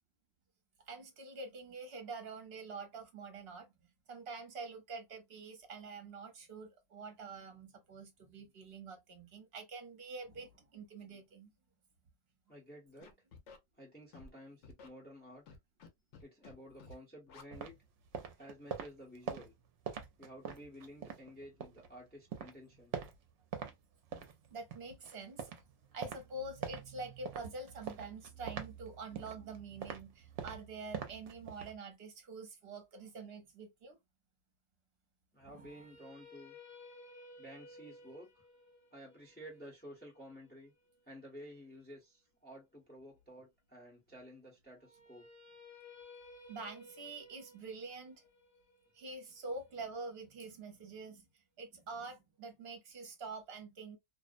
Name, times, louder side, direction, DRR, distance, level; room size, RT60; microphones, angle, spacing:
voice 1, 0.9-3.7 4.1-11.5 22.7-22.8 24.5-25.5 25.9-34.0 35.4-35.7 46.5-48.2 48.9-51.3 51.6-54.0, right 3 dB, 60° right, 1.0 m, -46 dB
voice 2, 12.5-13.1 13.8-15.4 16.2-17.7 18.4-19.5 20.2-22.9 35.3-36.6 37.4-38.4 38.9-40.7 41.1-45.3, equal, 10° left, 0.8 m, -53 dB
Scratching (performance technique), 13.0-13.6 14.1-14.3 14.6-14.9 15.5-15.9 16.1-16.5 16.8-16.9 17.3-17.4, left 4 dB, 75° left, 0.9 m, -53 dB
sound 1, 17.5-21.9 22.2-23.7 24.0-31.8, right 7 dB, 75° right, 0.9 m, -45 dB
sound 2, 35.4-41.5 44.8-50.8, left 2 dB, 25° left, 0.4 m, -57 dB
2.5 x 2.0 x 2.4 m
omnidirectional pair, 1.3 m